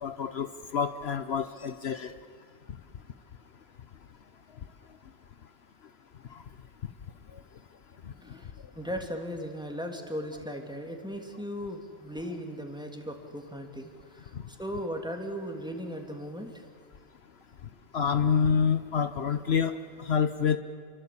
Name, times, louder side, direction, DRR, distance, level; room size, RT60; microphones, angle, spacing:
voice 1, 0.0-2.2 6.3-6.4 6.8-6.9 7.3-7.4 8.0-8.4 14.3-14.4 17.9-20.6, left 6 dB, 65° left, 11 dB, 1.1 m, -28 dB
voice 2, 8.7-16.6, equal, 5° right, 3 dB, 2.8 m, -37 dB
29.0 x 23.5 x 8.6 m, 2.1 s
omnidirectional pair, 1.2 m